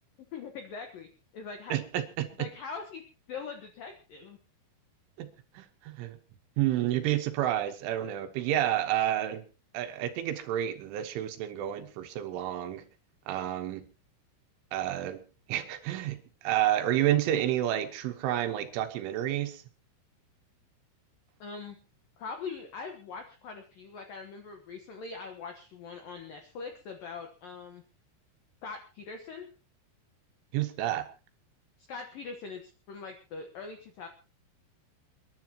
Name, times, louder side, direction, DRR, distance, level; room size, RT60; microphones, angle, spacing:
voice 1, 0.3-1.1 1.3-1.7 2.4-3.0 3.3-4.4 21.4-21.8 22.2-27.8 28.6-29.5 31.9-34.1, left 5 dB, 75° left, 5 dB, 2.1 m, -42 dB
voice 2, 1.7-2.5 5.2-5.3 5.5-6.2 6.6-9.4 9.7-12.8 13.3-13.8 14.7-15.2 15.5-19.6 30.5-31.1, right 12 dB, 75° right, 7 dB, 3.4 m, -30 dB
29.0 x 11.0 x 2.9 m, 0.33 s
omnidirectional pair, 6.0 m